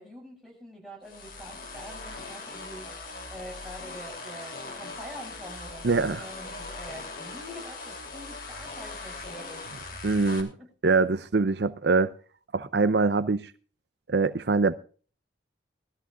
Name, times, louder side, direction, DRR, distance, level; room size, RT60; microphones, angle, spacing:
voice 1, 0.0-2.9 3.2-10.0 10.6-10.7, equal, ahead, 6.3 m, -45 dB
sound 1, 1.0-10.4, left 3 dB, 55° left, 3.0 m, -40 dB
voice 2, 5.8-6.2 10.0-10.5 10.8-12.1 12.5-13.5 14.1-14.7, right 3 dB, 70° right, 0.6 m, -23 dB
19.5 x 13.5 x 2.5 m
head